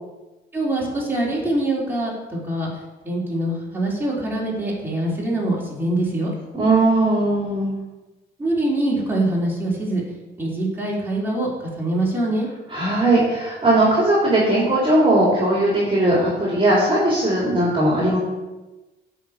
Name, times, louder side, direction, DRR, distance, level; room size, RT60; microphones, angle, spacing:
voice 1, 0.5-2.7 3.0-6.3 8.4-10.0 10.4-12.5, right 1 dB, 10° right, -5 dB, 3.5 m, -24 dB
voice 2, 6.6-7.8 12.7-18.2, right 1 dB, 25° right, -5 dB, 2.9 m, -18 dB
8.6 x 5.1 x 7.1 m, 1.1 s
cardioid pair, 90°, 20 cm